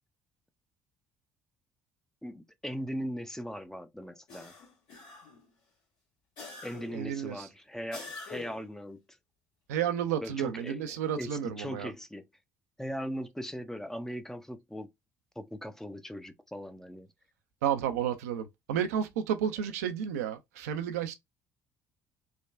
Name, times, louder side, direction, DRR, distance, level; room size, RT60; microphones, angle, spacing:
voice 1, 2.2-4.5 6.6-9.2 10.2-11.3 11.6-12.2 12.8-14.9 15.4-17.1, equal, 5° left, 0.5 m, -39 dB
sound 1, 4.3-5.5 6.4-7.1 7.9-8.7, left 4 dB, 65° left, 1.5 m, -45 dB
voice 2, 6.9-7.5 9.7-11.9 17.6-21.1, right 9 dB, 75° right, 0.4 m, -31 dB
3.3 x 2.2 x 2.3 m
hypercardioid pair, 55°, 8 cm